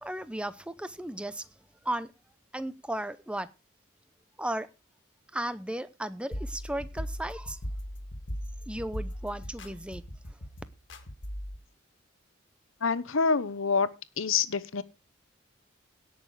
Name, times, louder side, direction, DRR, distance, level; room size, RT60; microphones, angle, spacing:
voice 1, 0.0-1.4 1.8-2.1 2.5-3.5 4.4-4.7 5.3-7.6 8.7-10.0, right 1 dB, 5° right, 0.7 m, -35 dB
sound 1, 6.3-11.6, equal, 65° left, 1.9 m, -38 dB
voice 2, 12.8-13.9 14.2-14.8, left 5 dB, 80° left, 1.0 m, -26 dB
17.5 x 6.6 x 4.8 m
head